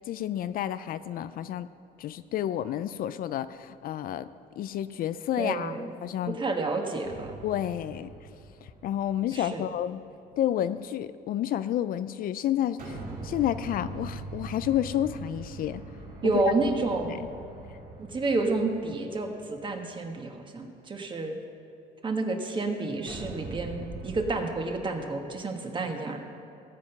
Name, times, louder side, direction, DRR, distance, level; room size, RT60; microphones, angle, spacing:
voice 1, 0.0-1.7 2.0-4.3 4.6-6.4 7.4-8.1 8.8-10.0 10.4-13.0 13.2-15.8 16.2-16.3 17.1-17.2, left 11 dB, 60° left, 13 dB, 0.4 m, -30 dB
voice 2, 5.4-5.9 6.3-7.4 9.3-9.6 16.2-17.1 18.0-21.4 22.0-26.2, right 3 dB, 30° right, 3 dB, 1.6 m, -30 dB
sound 1, 7.0-9.6 12.8-20.0 23.1-24.3, right 3 dB, 55° right, 2.5 m, -42 dB
17.0 x 7.7 x 5.9 m, 2.7 s
cardioid pair, 110°, 17 cm